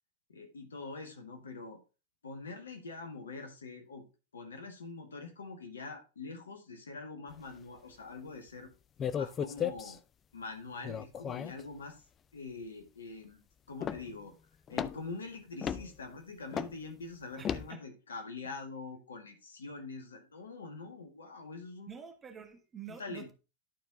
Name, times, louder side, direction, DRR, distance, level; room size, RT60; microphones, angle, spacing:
voice 1, 0.3-1.8 2.2-4.0 4.3-8.7 9.1-10.0 10.3-12.0 12.3-13.4 13.7-14.3 14.7-21.9 23.0-23.3, left 3 dB, 70° left, 1.7 m, -44 dB
sound 1, 9.0-10.0 10.8-11.6 13.8-14.2 14.7-15.1 15.6-15.9 16.5-16.8 17.4-17.7, left 8 dB, 25° left, 0.4 m, -35 dB
voice 2, 17.4-17.8 21.9-23.3, right 7 dB, 20° right, 1.3 m, -48 dB
11.5 x 4.6 x 3.6 m
figure-of-eight pair, 90°, 0 cm